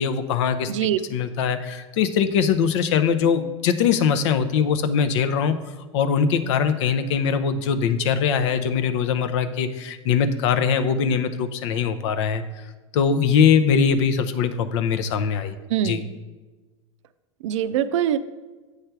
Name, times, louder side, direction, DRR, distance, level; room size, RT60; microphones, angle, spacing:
voice 1, 0.0-0.7 1.1-5.6 5.9-12.4 12.9-15.5 15.8-16.0, left 7 dB, 70° left, 10 dB, 0.6 m, -21 dB
voice 2, 0.7-1.0 15.7-16.1 17.4-18.2, right 11 dB, 75° right, 13 dB, 0.5 m, -23 dB
8.0 x 3.3 x 5.7 m, 1.3 s
hypercardioid pair, 100°, 16 cm